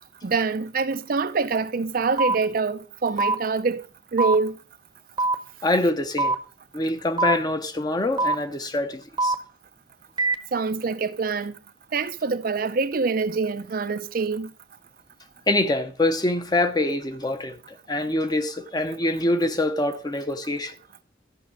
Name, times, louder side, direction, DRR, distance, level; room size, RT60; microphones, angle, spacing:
voice 1, 0.2-3.8 4.1-4.5 10.5-11.6 11.9-14.5, right 4 dB, 50° right, 0.5 m, -25 dB
sound 1, 2.2-2.3 3.2-3.3 4.2-4.4 5.2-5.4 6.2-6.4 7.2-7.4 8.2-8.3 9.2-9.3 10.2-10.3, right 2 dB, 25° right, 0.9 m, -22 dB
voice 2, 5.6-6.3 6.7-9.3 15.5-17.6 17.9-20.7, left 2 dB, 20° left, 0.8 m, -25 dB
13.0 x 6.1 x 4.7 m
head